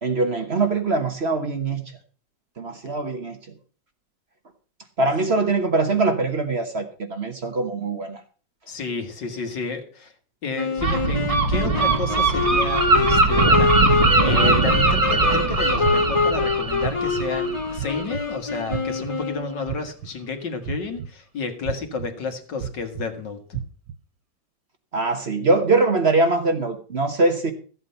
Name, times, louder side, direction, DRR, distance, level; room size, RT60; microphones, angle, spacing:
voice 1, 0.0-1.8 2.6-3.4 5.0-8.2 24.9-27.5, right 3 dB, 40° right, 6 dB, 1.3 m, -22 dB
voice 2, 8.7-10.1 10.4-11.2 11.5-23.6, left 4 dB, 75° left, 6 dB, 2.4 m, -31 dB
sound 1, 10.5-19.7, left 4 dB, 40° left, 0.4 m, -26 dB
Gull seagull, 10.8-18.3, right 2 dB, 20° right, 1.6 m, -21 dB
sound 2, 11.3-11.4 12.0-12.4 12.9-13.4 13.9-14.3 14.8-15.3 15.8-16.2 16.8-17.3 17.8-18.2 18.7-19.1 19.7-20.1 20.7-21.1 21.6-22.1 22.6-23.0 23.5-23.9, right 9 dB, 65° right, 1.1 m, -30 dB
13.5 x 8.0 x 5.5 m, 0.40 s
omnidirectional pair, 1.9 m